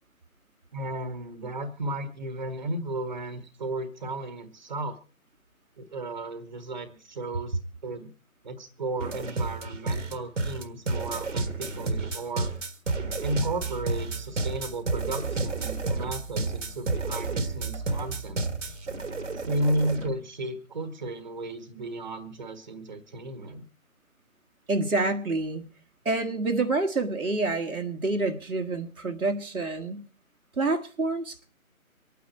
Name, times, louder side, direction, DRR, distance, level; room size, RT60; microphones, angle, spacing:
voice 1, 0.7-5.0 5.8-8.1 8.4-12.5 13.2-18.4 19.3-23.6, right 1 dB, 35° right, 10 dB, 1.4 m, -34 dB
sound 1, 9.0-20.1, right 3 dB, 55° right, 1.6 m, -31 dB
voice 2, 24.7-25.7 26.1-30.0 30.6-31.5, right 3 dB, 80° right, 2 dB, 1.7 m, -27 dB
25.0 x 9.4 x 4.4 m, 0.37 s
figure-of-eight pair, 155°, 42 cm